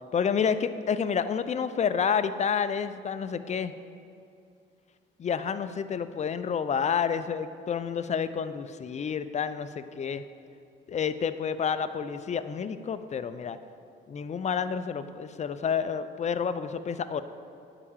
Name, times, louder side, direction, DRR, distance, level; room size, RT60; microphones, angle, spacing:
voice 1, 0.1-3.7 5.2-10.2 10.9-13.6 14.1-17.2, left 7 dB, 35° left, 11 dB, 0.5 m, -29 dB
10.0 x 4.9 x 7.2 m, 2.5 s
cardioid pair, 90°, 20 cm